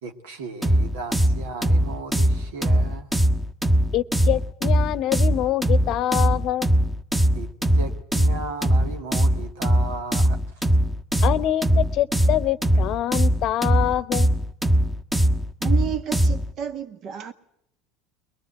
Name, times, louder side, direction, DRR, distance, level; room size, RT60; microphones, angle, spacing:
voice 1, 0.0-3.1 7.3-10.4, right 3 dB, 80° right, 1.9 m, -36 dB
sound 1, 0.6-16.5, equal, 10° right, 1.3 m, -21 dB
voice 2, 3.9-6.7 11.2-14.3, left 13 dB, 55° left, 0.8 m, -25 dB
voice 3, 15.6-17.3, right 11 dB, 55° right, 1.6 m, -31 dB
22.5 x 20.0 x 8.2 m
hypercardioid pair, 85°, 0 cm